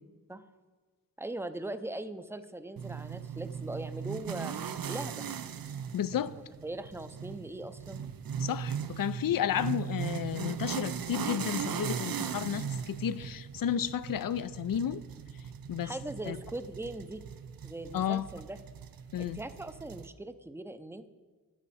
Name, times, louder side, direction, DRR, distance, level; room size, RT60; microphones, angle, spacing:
voice 1, 1.2-4.5 4.9-5.3 6.1-8.1 15.8-17.2 17.6-18.6 19.2-21.1, right 2 dB, 5° right, 11 dB, 0.5 m, -40 dB
sound 1, 2.8-20.1, right 7 dB, 90° right, 0.6 m, -38 dB
voice 2, 5.9-6.4 8.4-15.0 15.7-16.0 16.3-16.4 17.9-18.2 19.1-19.4, left 9 dB, 75° left, 16 dB, 0.5 m, -32 dB
13.5 x 10.0 x 4.2 m, 1.4 s
wide cardioid pair, 95°, 34 cm